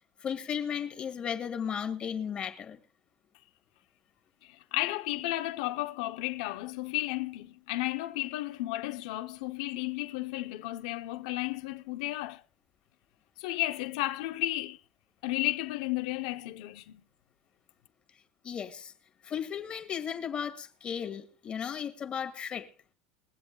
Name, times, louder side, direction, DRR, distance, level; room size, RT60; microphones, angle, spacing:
voice 1, 0.2-2.8 18.4-18.9 19.2-22.7, left 8 dB, 30° left, 1.9 m, -35 dB
voice 2, 4.4-12.4 13.4-14.8 15.2-17.0, left 18 dB, 70° left, 0.8 m, -33 dB
22.5 x 7.8 x 2.3 m
supercardioid pair, 115°, 4 cm